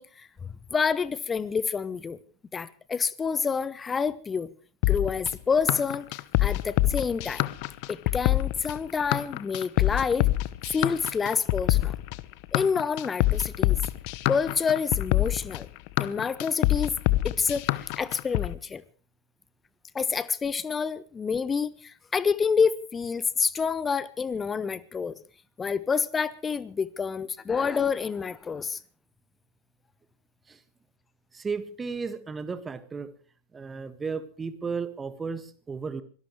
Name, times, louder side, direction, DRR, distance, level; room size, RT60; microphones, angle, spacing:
voice 1, 0.0-2.2 2.5-4.5 4.9-6.1 6.4-7.5 7.9-10.3 10.7-11.9 12.5-13.8 14.3-15.7 16.0-17.0 17.2-18.8 19.9-25.2 25.6-28.8, left 5 dB, 15° left, 0.7 m, -28 dB
sound 1, 4.8-18.5, left 17 dB, 45° left, 0.9 m, -25 dB
voice 2, 31.3-33.1 33.5-36.0, right 5 dB, 15° right, 1.6 m, -34 dB
25.0 x 18.0 x 3.2 m
figure-of-eight pair, 90°, 0 cm